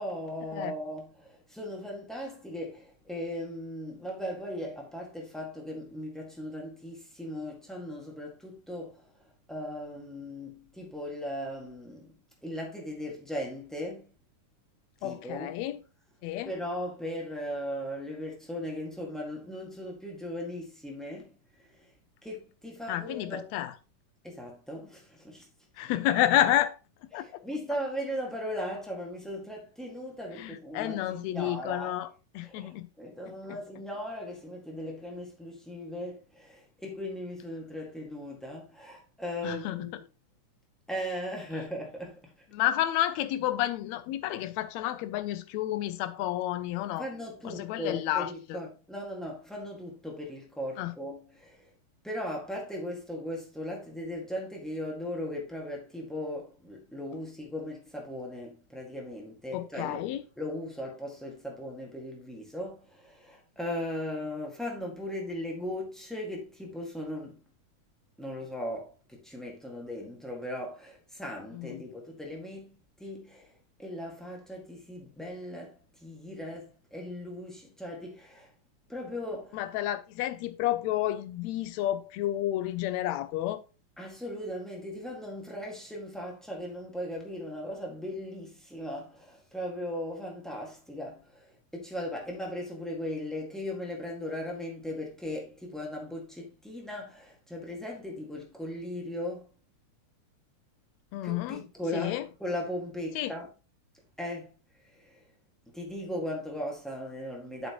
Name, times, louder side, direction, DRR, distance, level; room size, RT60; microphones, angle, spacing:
voice 1, 0.0-12.2 12.4-14.1 15.0-15.6 16.4-21.9 22.2-23.5 24.2-25.5 27.1-32.0 32.4-40.0 40.9-42.4 47.0-51.7 52.0-67.4 68.2-78.5 78.9-79.7 84.0-99.5 101.2-103.5 104.2-104.5 104.8-105.2 105.7-107.7, left 1 dB, ahead, 0.8 m, -38 dB
voice 2, 15.0-15.7 16.2-16.5 22.9-23.7 25.8-26.7 27.1-27.2 30.7-32.1 32.3-32.9 39.4-39.9 42.5-47.0 47.6-48.3 50.8-50.9 59.5-60.2 79.6-83.6 101.1-101.6 101.9-102.2 103.2-103.3, left 13 dB, 80° left, 1.6 m, -30 dB
8.0 x 7.7 x 3.0 m
omnidirectional pair, 3.7 m